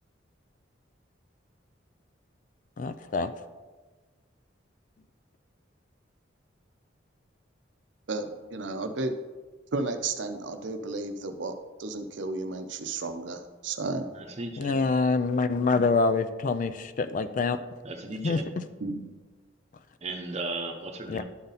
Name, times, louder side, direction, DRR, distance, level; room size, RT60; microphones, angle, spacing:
voice 1, 2.8-3.3 14.6-17.6 18.2-18.4 21.1-21.2, left 4 dB, 40° left, 11 dB, 0.3 m, -25 dB
voice 2, 8.1-9.1 9.7-11.5 11.8-14.1 18.8-19.0, right 3 dB, 70° right, 7 dB, 0.6 m, -33 dB
voice 3, 14.1-14.8 17.8-18.4 20.0-21.2, right 2 dB, 35° right, 3 dB, 0.8 m, -36 dB
11.5 x 4.0 x 4.0 m, 1.3 s
head